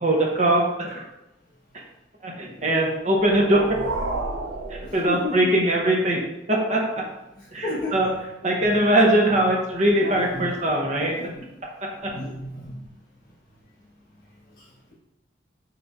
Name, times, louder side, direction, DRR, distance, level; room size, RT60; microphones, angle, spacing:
voice 1, 0.0-1.1 1.7-1.8 2.2-3.6 4.7-6.2 6.7-6.8 7.5-8.1 8.4-11.3 12.0-12.1, right 1 dB, 40° right, 0 dB, 0.7 m, -21 dB
sound 1, 3.1-5.7, right 2 dB, 90° right, 0.5 m, -32 dB
voice 2, 5.1-5.5 7.4-8.2 8.6-8.8 10.0-11.5 12.0-12.8 14.6-14.9, left 1 dB, 50° left, -6 dB, 1.2 m, -35 dB
5.1 x 3.0 x 2.4 m, 0.93 s
head